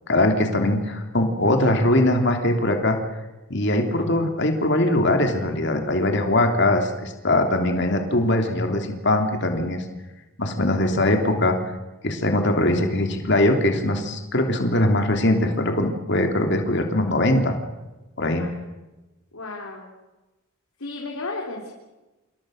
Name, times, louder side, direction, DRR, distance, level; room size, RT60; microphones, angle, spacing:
voice 1, 0.1-3.0 3.5-9.8 10.4-11.6 12.0-17.5 18.2-18.5, left 1 dB, 55° left, 4 dB, 3.1 m, -21 dB
voice 2, 19.3-19.9 20.8-21.7, left 3 dB, 80° left, 0 dB, 4.0 m, -33 dB
29.0 x 27.5 x 6.5 m, 1.1 s
head